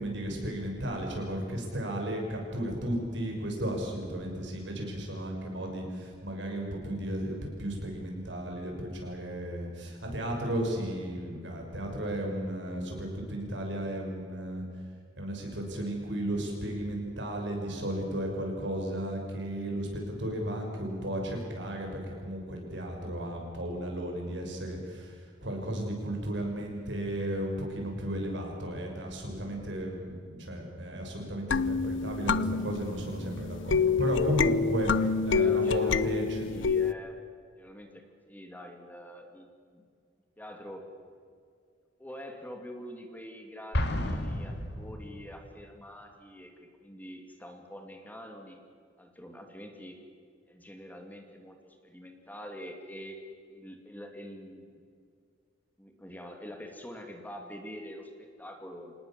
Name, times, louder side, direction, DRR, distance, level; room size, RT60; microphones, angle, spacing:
voice 1, 0.0-14.6 15.2-36.4, right 1 dB, 70° right, 1 dB, 6.4 m, -34 dB
sound 1, 31.5-36.9, left 5 dB, 85° left, 0.7 m, -27 dB
voice 2, 35.3-36.2 36.4-37.2 37.6-38.0 38.3-39.8 40.4-40.8 42.0-48.6 49.0-50.0 50.5-53.2 53.5-54.8 55.8-58.9, equal, 10° left, 4 dB, 2.4 m, -45 dB
Explosion, 43.7-45.5, left 1 dB, 65° left, 2.5 m, -32 dB
26.5 x 19.0 x 7.5 m, 2.2 s
head